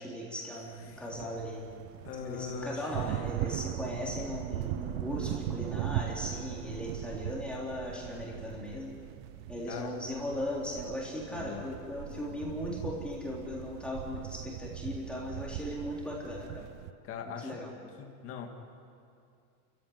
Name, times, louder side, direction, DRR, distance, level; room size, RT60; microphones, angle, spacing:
voice 1, 0.0-1.7 2.2-9.0 9.5-16.6 17.3-17.7, left 1 dB, ahead, -5 dB, 3.7 m, -38 dB
sound 1, 0.9-16.9, right 14 dB, 40° right, 0.6 m, -39 dB
voice 2, 2.0-2.9 9.7-9.9 11.3-11.6 17.0-17.6 18.0-18.5, left 6 dB, 30° left, 2 dB, 2.3 m, -40 dB
30.0 x 15.5 x 9.7 m, 2.4 s
supercardioid pair, 155°, 47 cm